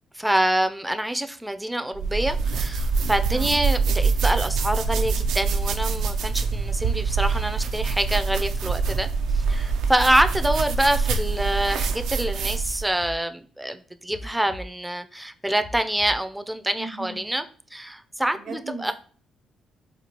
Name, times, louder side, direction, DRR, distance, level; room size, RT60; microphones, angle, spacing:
voice 1, 0.2-9.1 9.3-17.4 17.7-18.9, right 1 dB, 5° right, 0.4 m, -26 dB
sound 1, 1.9-12.9, right 4 dB, 85° right, 0.4 m, -25 dB
sound 2, 11.5-11.7 12.6-13.2 14.1-14.7 15.6-16.2, left 1 dB, 80° left, 1.4 m, -39 dB
voice 2, 16.8-17.3 18.3-18.9, right 3 dB, 70° right, 0.9 m, -37 dB
4.4 x 2.3 x 2.8 m
cardioid pair, 90°, 0 cm